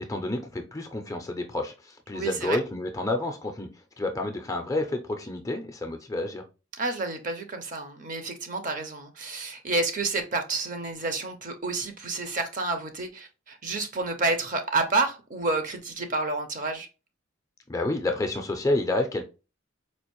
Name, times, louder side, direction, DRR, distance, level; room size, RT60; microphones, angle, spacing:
voice 1, 0.0-3.7 4.0-6.4 17.7-19.3, left 2 dB, 15° left, 0.4 m, -29 dB
voice 2, 2.1-2.6 6.8-16.9, right 3 dB, 40° right, 0.6 m, -29 dB
4.3 x 2.5 x 2.9 m
head